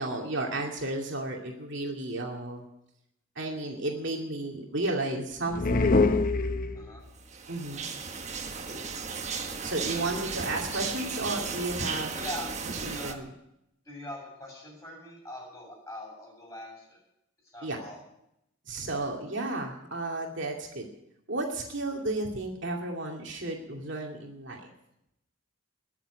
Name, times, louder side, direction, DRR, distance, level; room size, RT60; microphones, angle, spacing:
voice 1, 0.0-2.7 3.4-6.0 7.5-7.8 9.6-12.2 12.6-13.3 17.6-17.8 18.6-20.8 21.3-24.7, right 2 dB, 60° right, 0 dB, 2.5 m, -33 dB
sound 1, 5.5-7.1, left 3 dB, 40° left, 0.7 m, -24 dB
voice 2, 6.7-7.1 12.2-12.5 12.7-13.2 13.9-17.0 17.4-18.0, left 1 dB, 15° left, -2 dB, 7.4 m, -42 dB
sound 2, 7.3-13.1, right 5 dB, 35° right, 1.3 m, -35 dB
21.5 x 7.5 x 9.0 m, 0.81 s
head